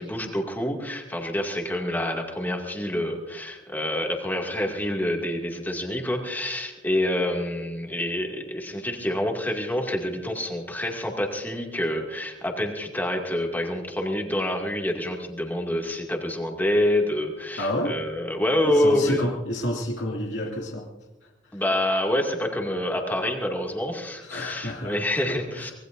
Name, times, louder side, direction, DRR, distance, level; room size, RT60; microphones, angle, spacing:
voice 1, 0.0-19.3 21.5-25.7, left 1 dB, 10° left, 1 dB, 2.3 m, -27 dB
voice 2, 17.6-18.0 18.6-20.9 21.5-21.6 24.2-25.0 25.2-25.7, left 1 dB, 80° left, -1 dB, 2.4 m, -30 dB
25.0 x 20.0 x 2.7 m, 1.1 s
head